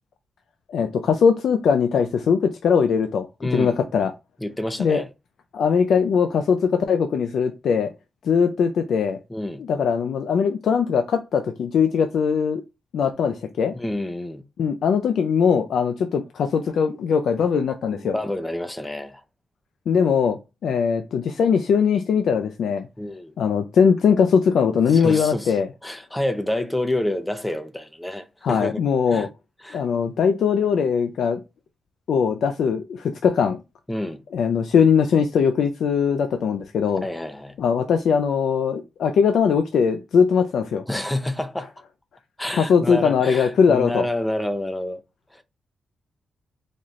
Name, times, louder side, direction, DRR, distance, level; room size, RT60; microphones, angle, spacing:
voice 1, 0.7-3.3 3.5-4.1 4.8-5.0 5.5-7.9 8.2-9.2 9.7-12.6 12.9-13.7 14.6-18.2 19.9-22.9 23.4-25.7 28.4-29.3 29.7-31.4 32.1-33.6 34.3-37.0 37.6-40.8 42.5-44.0, left 6 dB, 80° left, 0.4 m, -20 dB
voice 2, 3.4-3.8 4.4-5.1 9.3-9.6 13.7-14.4 17.9-19.2 23.0-23.3 24.9-29.3 29.6-29.8 33.9-34.2 37.0-37.6 40.9-41.7 42.4-45.0 45.3-45.4, left 1 dB, 10° left, 0.5 m, -28 dB
4.1 x 2.4 x 3.1 m
wide cardioid pair, 135°, 0 cm